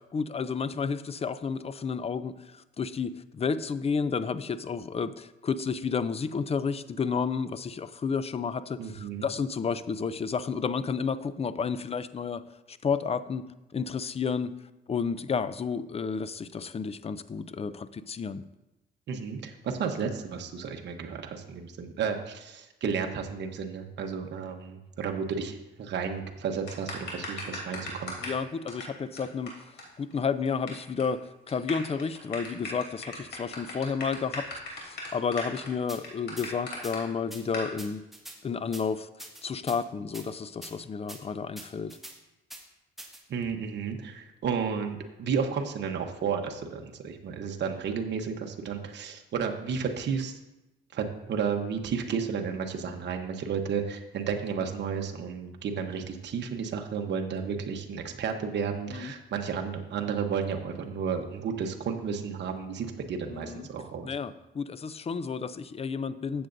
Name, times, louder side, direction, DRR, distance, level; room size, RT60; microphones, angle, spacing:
voice 1, 0.1-12.4 12.7-13.4 13.7-14.5 14.9-18.4 28.2-29.5 30.0-38.0 38.4-39.1 39.4-42.0 58.9-59.1 63.3-63.7 64.0-66.5, left 5 dB, 30° left, 14 dB, 0.5 m, -31 dB
voice 2, 8.8-9.3 19.1-28.1 43.3-50.4 50.9-64.1, right 6 dB, 60° right, 3 dB, 1.0 m, -32 dB
sound 1, 26.7-28.4 28.7-28.8 29.2-29.3 29.5-29.6 29.8-29.9 30.1-30.7 31.0-31.2 31.5-37.0 37.5-37.7, left 2 dB, 60° left, 3.1 m, -37 dB
sound 2, 35.9-36.0 36.4-36.5 36.8-36.9 37.3-37.4 37.8-38.4 38.7-38.8 39.2-39.8 40.1-40.3 40.6-40.7 41.1-41.2 41.6-42.1 42.5-42.6 43.0-43.2, right 1 dB, ahead, 1.6 m, -43 dB
14.0 x 7.9 x 2.6 m, 0.96 s
cardioid pair, 90°, 20 cm